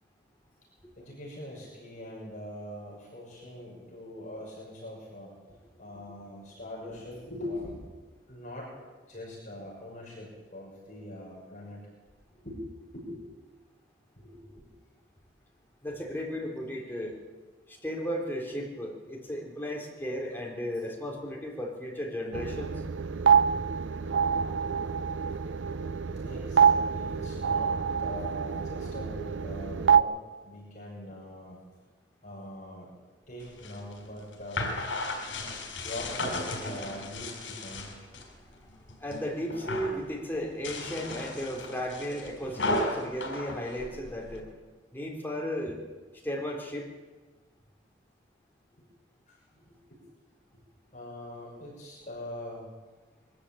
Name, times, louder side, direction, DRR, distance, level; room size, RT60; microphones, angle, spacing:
voice 1, 1.0-7.9 8.3-8.7 9.1-11.9 12.4-12.6 12.9-13.2 14.2-14.7 26.1-30.2 30.4-31.6 32.2-32.9 33.3-34.7 35.8-37.9 42.5-42.6 48.8-48.9 49.3-50.0 50.9-52.7, left 1 dB, 40° left, -4 dB, 6.4 m, -42 dB
voice 2, 15.8-17.2 17.7-22.8 38.2-38.7 39.0-44.6 44.9-45.8 46.2-46.9, equal, 10° left, -1 dB, 3.8 m, -35 dB
sound 1, 22.3-30.0, right 7 dB, 85° right, 0.6 m, -26 dB
sound 2, 33.4-38.3 38.7-39.2 39.5-40.0 40.5-44.4, left 2 dB, 90° left, 5.1 m, -35 dB
22.5 x 13.5 x 8.8 m, 1.3 s
head